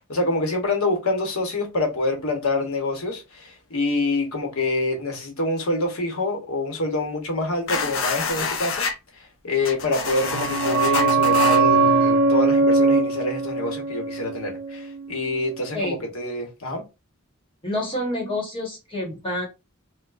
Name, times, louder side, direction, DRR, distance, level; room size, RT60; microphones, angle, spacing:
voice 1, 0.0-8.9 9.1-16.8, left 2 dB, 90° left, 1.0 m, -26 dB
sound 1, 7.7-9.0 9.6-11.6, left 5 dB, 65° left, 0.5 m, -27 dB
sound 2, 9.9-15.4 15.6-15.7, right 3 dB, 80° right, 0.5 m, -21 dB
voice 2, 17.6-19.4, left 1 dB, 25° left, 1.2 m, -28 dB
4.5 x 2.1 x 2.4 m
head